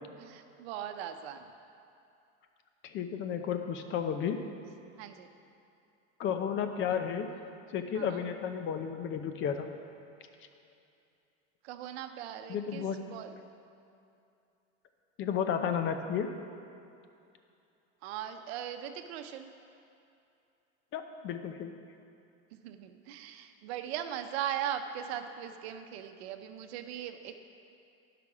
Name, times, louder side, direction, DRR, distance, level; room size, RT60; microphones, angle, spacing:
voice 1, 0.2-1.4 5.0-5.3 7.9-8.2 11.6-13.4 18.0-19.5 22.5-27.3, right 10 dB, 80° right, 8 dB, 0.8 m, -39 dB
voice 2, 2.8-4.4 6.2-7.3 7.7-9.7 12.5-13.0 15.2-16.3 20.9-21.7, left 8 dB, 40° left, 7 dB, 0.7 m, -32 dB
12.0 x 5.9 x 4.8 m, 2.6 s
supercardioid pair, 130°, 31 cm